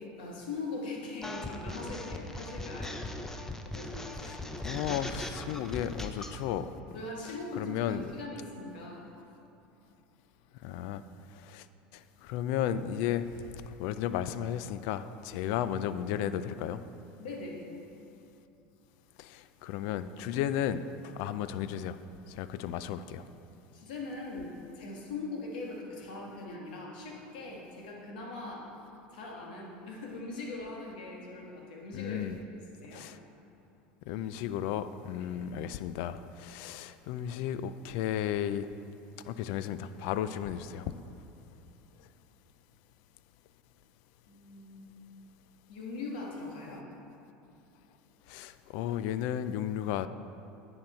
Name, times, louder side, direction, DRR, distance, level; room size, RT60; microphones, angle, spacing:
voice 1, 0.0-3.0 3.7-4.4 6.9-9.0 17.2-17.6 23.7-28.7 29.1-32.2 32.5-33.1 35.2-35.3 44.2-45.0 45.7-46.9, left 3 dB, 80° left, -1 dB, 1.7 m, -41 dB
sound 1, 1.2-6.4, left 1 dB, 10° left, 0.7 m, -39 dB
voice 2, 4.6-6.7 7.6-8.0 10.6-11.0 11.5-11.6 12.2-13.3 13.8-16.8 19.2-20.8 21.2-22.0 22.3-23.2 31.9-32.3 32.9-33.1 34.1-38.7 39.3-40.8 48.3-50.1, left 10 dB, 65° left, 13 dB, 0.4 m, -34 dB
10.0 x 5.9 x 4.4 m, 2.9 s
hypercardioid pair, 95°, 5 cm